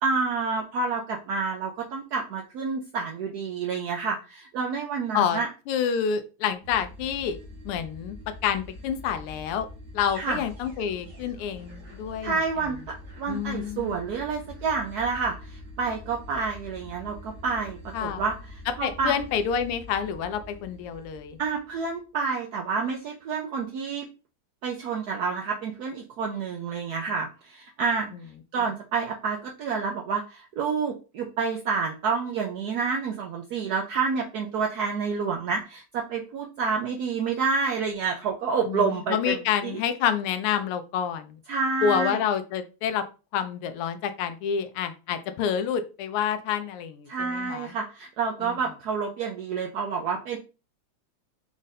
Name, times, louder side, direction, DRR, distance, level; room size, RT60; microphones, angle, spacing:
voice 1, 0.0-5.5 10.1-10.4 12.2-19.2 21.4-24.0 24.6-28.1 28.5-39.8 41.5-42.2 47.1-50.4, right 5 dB, 80° right, 1 dB, 0.8 m, -29 dB
voice 2, 5.7-7.4 7.6-8.1 8.4-9.7 9.9-12.4 13.3-14.0 17.9-18.2 18.8-21.4 28.1-28.2 28.6-28.7 38.7-41.4 41.8-43.0 43.3-47.7 48.4-48.6, left 8 dB, 90° left, 10 dB, 1.6 m, -28 dB
sound 1, 6.6-22.0, left 1 dB, 45° right, 1.0 m, -44 dB
5.2 x 2.5 x 4.0 m, 0.32 s
omnidirectional pair, 2.4 m